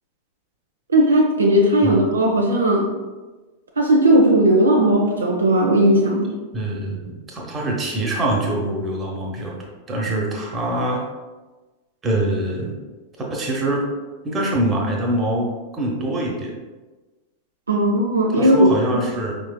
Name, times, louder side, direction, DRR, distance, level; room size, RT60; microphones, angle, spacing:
voice 1, 0.9-2.9 3.8-6.3 17.7-19.0, right 1 dB, 75° right, 0 dB, 0.6 m, -17 dB
voice 2, 6.5-9.6 9.9-11.0 12.0-12.8 13.3-13.8 14.2-15.5 15.7-16.5 18.3-19.4, right 1 dB, 20° right, -1 dB, 1.0 m, -24 dB
4.9 x 3.9 x 2.2 m, 1.2 s
figure-of-eight pair, 90°, 0 cm